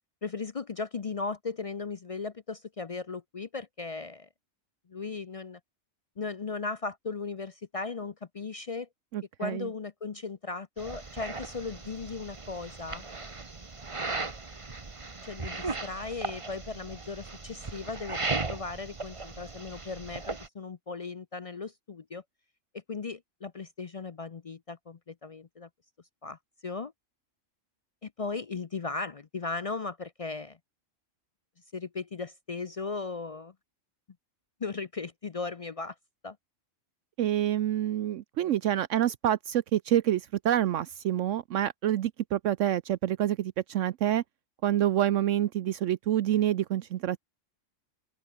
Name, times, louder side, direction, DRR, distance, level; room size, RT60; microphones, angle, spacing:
voice 1, 0.2-4.3 4.9-5.6 6.2-8.9 9.4-13.1 14.2-14.3 15.2-22.2 22.7-25.7 26.2-26.9 28.0-30.6 31.7-33.5 34.6-36.0 36.2-36.4, left 4 dB, 45° left, 0.4 m, -37 dB
voice 2, 9.1-9.7 37.2-44.2 44.6-47.2, right 11 dB, 70° right, 1.0 m, -27 dB
sound 1, 10.8-20.5, right 3 dB, 25° right, 1.3 m, -37 dB
open air
omnidirectional pair, 1.4 m